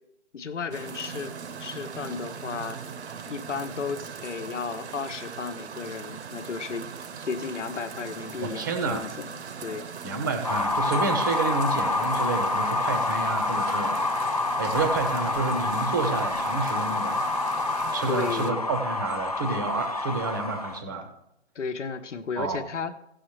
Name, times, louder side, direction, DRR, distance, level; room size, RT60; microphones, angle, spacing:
voice 1, 0.3-1.3 1.6-2.8 3.3-6.9 7.2-9.9 18.1-18.7 21.5-22.9, left 5 dB, 75° left, 10 dB, 1.2 m, -34 dB
sound 1, 0.7-18.5, right 6 dB, 60° right, 0.9 m, -39 dB
voice 2, 8.4-9.1 10.0-17.2 17.9-21.1 22.4-22.7, right 3 dB, 15° right, 6 dB, 0.8 m, -30 dB
sound 2, 10.4-20.8, left 3 dB, 35° left, 0.4 m, -27 dB
16.5 x 6.5 x 3.2 m, 0.82 s
hypercardioid pair, 165°, 37 cm